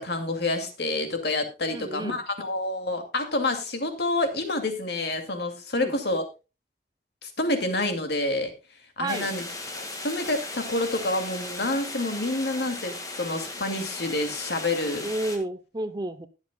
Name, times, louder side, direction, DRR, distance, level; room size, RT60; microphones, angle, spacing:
voice 1, 0.0-6.2 7.2-8.5 9.0-9.4 9.7-15.1, left 2 dB, 65° left, 6 dB, 2.5 m, -28 dB
voice 2, 1.7-2.2 5.7-5.9 9.0-9.3 15.0-16.3, right 2 dB, 25° right, 12 dB, 0.7 m, -31 dB
sound 1, 9.1-15.4, left 2 dB, 20° left, 2.0 m, -37 dB
20.5 x 7.3 x 2.3 m, 0.28 s
head